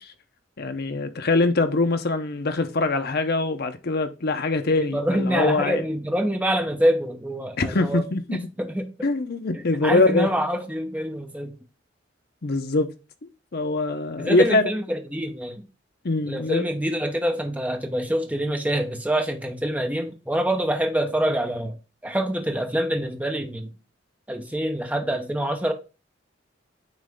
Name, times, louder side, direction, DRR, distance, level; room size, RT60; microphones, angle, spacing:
voice 1, 0.6-5.8 7.6-8.4 9.0-10.3 12.4-12.9 13.2-14.7 16.0-16.6, left 3 dB, 55° left, 0.8 m, -23 dB
voice 2, 4.9-8.0 8.6-8.9 9.5-11.6 14.2-15.7 16.3-21.8 22.0-23.7 24.3-25.7, right 1 dB, 10° right, 0.8 m, -26 dB
9.3 x 3.2 x 3.6 m
head